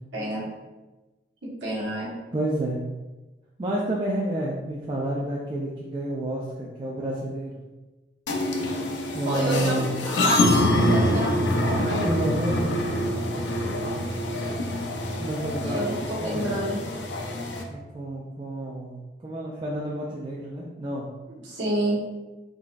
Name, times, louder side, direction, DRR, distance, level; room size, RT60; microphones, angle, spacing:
voice 1, 0.1-0.5 1.6-2.1 9.2-12.0 15.5-16.8 21.4-22.0, right 1 dB, 85° right, -7 dB, 1.2 m, -29 dB
voice 2, 2.3-2.8 3.6-7.6 9.1-9.9 12.0-12.7 15.2-16.4 17.7-21.1, right 1 dB, 25° right, -5 dB, 0.4 m, -30 dB
sound 1, 8.3-17.6, left 1 dB, 75° left, 0.5 m, -25 dB
3.9 x 3.2 x 2.4 m, 1.1 s
head